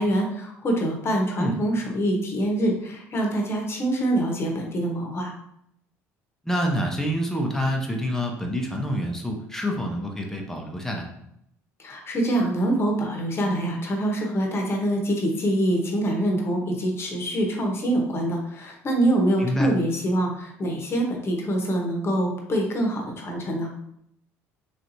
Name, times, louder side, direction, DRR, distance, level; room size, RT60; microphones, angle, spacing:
voice 1, 0.0-5.3 11.8-23.7, right 1 dB, 35° left, 1 dB, 1.0 m, -25 dB
voice 2, 6.4-11.1 19.4-19.7, equal, 5° left, 1 dB, 0.7 m, -27 dB
3.3 x 2.8 x 2.6 m, 0.74 s
hypercardioid pair, 75°, 7 cm